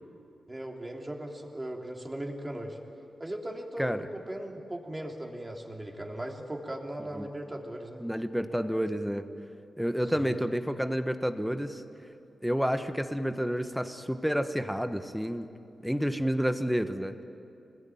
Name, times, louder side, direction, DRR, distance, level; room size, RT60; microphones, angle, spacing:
voice 1, 0.5-2.8 3.2-8.0 10.1-10.4, right 1 dB, 15° right, 1 dB, 3.2 m, -38 dB
voice 2, 8.0-9.3 9.8-11.8 12.4-15.5 15.8-17.2, equal, ahead, 8 dB, 1.2 m, -30 dB
25.5 x 20.5 x 9.4 m, 2.6 s
wide cardioid pair, 100°, 0 cm